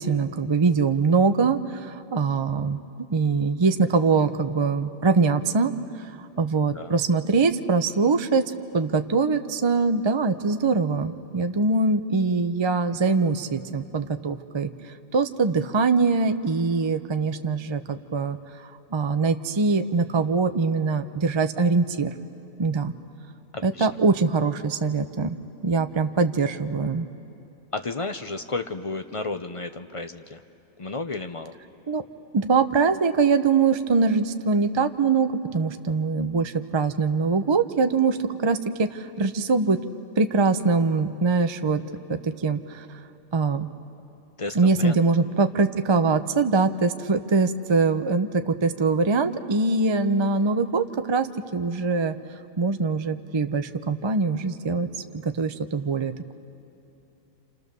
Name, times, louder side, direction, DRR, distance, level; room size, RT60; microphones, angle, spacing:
voice 1, 0.0-5.7 6.0-14.7 15.1-18.4 18.6-22.1 22.6-22.9 23.6-25.4 25.6-27.1 31.9-32.0 32.3-39.8 40.2-41.8 42.1-42.9 43.3-43.7 44.5-51.3 51.5-52.1 52.6-54.9 55.2-56.3, right 4 dB, 30° right, 8 dB, 0.5 m, -23 dB
voice 2, 23.5-23.9 27.7-30.4 30.8-31.6 44.4-45.0, left 3 dB, 35° left, 8 dB, 0.6 m, -32 dB
28.5 x 28.0 x 6.8 m, 2.9 s
omnidirectional pair, 1.4 m